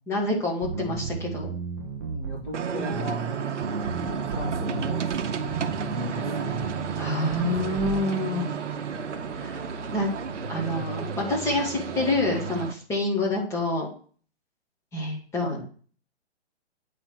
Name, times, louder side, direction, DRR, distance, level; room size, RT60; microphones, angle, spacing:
voice 1, 0.1-1.5 7.0-8.5 9.3-9.6 9.9-10.1 10.5-13.9 14.9-15.6, left 2 dB, 10° left, -1 dB, 1.1 m, -27 dB
sound 1, 0.6-8.0, right 6 dB, 20° right, 0.5 m, -33 dB
voice 2, 2.0-3.4 3.8-6.7 10.4-10.9 15.4-15.6, left 2 dB, 40° left, -7 dB, 3.9 m, -37 dB
sound 2, 2.5-12.7, right 7 dB, 85° right, 0.8 m, -33 dB
sound 3, 5.2-12.7, right 5 dB, 35° right, 1.0 m, -38 dB
8.8 x 3.2 x 6.0 m, 0.43 s
hypercardioid pair, 150°, 35 cm